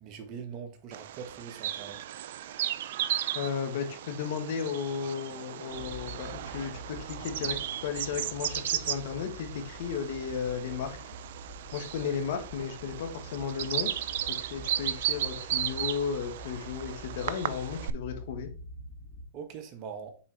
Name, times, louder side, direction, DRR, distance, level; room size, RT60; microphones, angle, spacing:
voice 1, 0.0-2.0 19.3-20.2, right 6 dB, 40° right, 1.3 m, -42 dB
Bird vocalization bird call bird song, 0.9-17.9, right 12 dB, 65° right, 0.4 m, -35 dB
voice 2, 3.3-11.0 11.7-13.9 14.3-18.5, left 7 dB, 65° left, 1.6 m, -34 dB
sound 1, 5.7-19.3, left 1 dB, 35° left, 2.7 m, -46 dB
7.0 x 4.2 x 3.5 m
hypercardioid pair, 125°, 0 cm